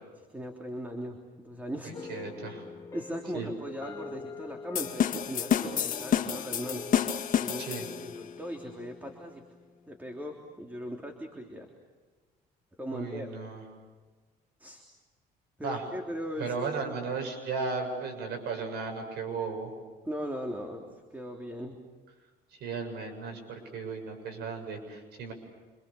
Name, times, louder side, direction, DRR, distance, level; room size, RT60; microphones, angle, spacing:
voice 1, 0.3-2.1 2.9-6.9 7.4-9.4 9.9-11.7 12.8-13.3 14.6-14.8 15.6-16.7 20.1-21.8, equal, 10° right, 2 dB, 3.3 m, -39 dB
voice 2, 1.8-2.6 3.3-3.5 7.6-7.9 12.9-13.6 15.6-15.8 16.4-19.7 22.5-25.3, right 4 dB, 75° right, 5 dB, 7.2 m, -35 dB
sound 1, 1.9-10.5, left 4 dB, 20° left, 2.7 m, -45 dB
sound 2, 4.8-8.2, left 9 dB, 55° left, 2.1 m, -29 dB
28.0 x 27.0 x 7.1 m, 1.4 s
cardioid pair, 110°, 17 cm